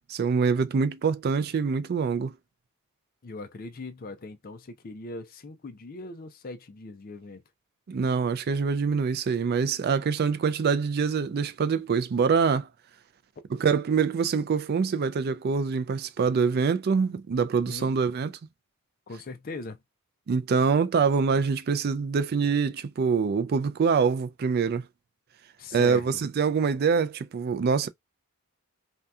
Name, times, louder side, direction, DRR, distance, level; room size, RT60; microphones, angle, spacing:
voice 1, 0.1-2.3 7.9-12.7 13.5-18.3 20.3-24.8 25.7-27.9, right 5 dB, 45° right, 0.3 m, -25 dB
voice 2, 3.2-7.4 17.7-17.9 19.1-19.8 25.6-26.2, left 3 dB, 40° left, 0.5 m, -40 dB
2.7 x 2.2 x 3.5 m
head